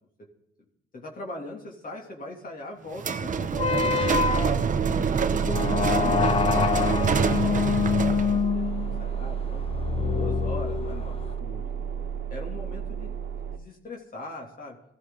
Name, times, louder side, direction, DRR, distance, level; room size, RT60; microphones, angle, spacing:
voice 1, 0.9-4.0 4.8-9.6 10.0-13.2 13.5-14.8, left 2 dB, 45° left, -1 dB, 2.9 m, -41 dB
sound 1, 3.0-8.4, right 6 dB, 40° right, 1.0 m, -26 dB
sound 2, 3.5-11.3, left 7 dB, 30° left, 0.5 m, -27 dB
sound 3, 4.1-13.6, right 7 dB, 65° right, 1.3 m, -31 dB
20.5 x 14.5 x 4.0 m, 0.72 s
cardioid pair, 90°, 20 cm